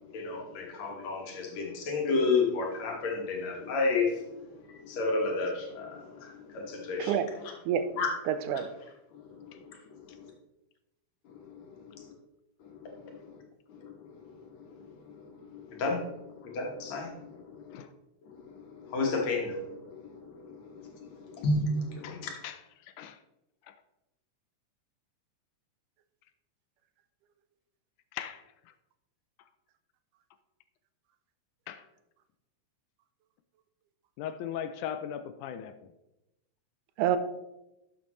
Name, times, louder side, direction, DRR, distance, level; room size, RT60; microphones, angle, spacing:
voice 1, 0.1-7.1 8.0-8.1 9.1-10.3 11.3-12.1 12.6-13.4 13.7-17.8 18.2-22.3, left 3 dB, 65° left, 1 dB, 2.6 m, -33 dB
voice 2, 7.0-7.3 7.7-7.9 8.3-8.7 37.0-37.2, right 9 dB, 90° right, 10 dB, 2.2 m, -27 dB
voice 3, 22.0-23.2 23.7-23.8 28.1-28.4 31.7-31.9 34.2-35.9, left 9 dB, 80° left, 11 dB, 1.9 m, -39 dB
12.0 x 7.3 x 3.1 m, 0.91 s
omnidirectional pair, 3.6 m